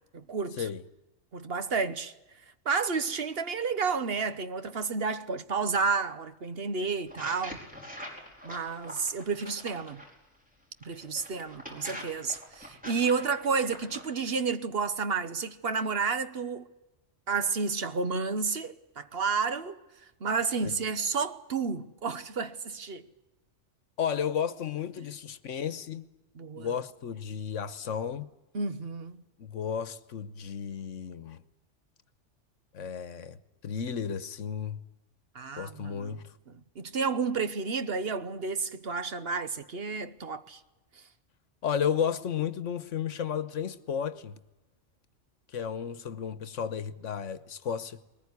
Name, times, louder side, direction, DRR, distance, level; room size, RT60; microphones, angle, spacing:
voice 1, 0.1-0.7 1.3-2.1 2.6-7.6 8.4-10.0 10.8-16.7 17.3-19.8 20.2-23.0 26.4-26.7 28.5-29.2 35.3-36.2 36.5-40.6, right 5 dB, 55° right, 1.2 m, -31 dB
sound 1, 7.1-10.1 10.8-14.1, equal, 5° right, 4.7 m, -44 dB
voice 2, 24.0-26.1 26.6-28.3 29.4-31.4 32.7-34.8 35.6-36.3 41.6-44.4 45.5-48.0, left 7 dB, 85° left, 1.4 m, -33 dB
21.5 x 19.5 x 9.6 m
omnidirectional pair, 1.3 m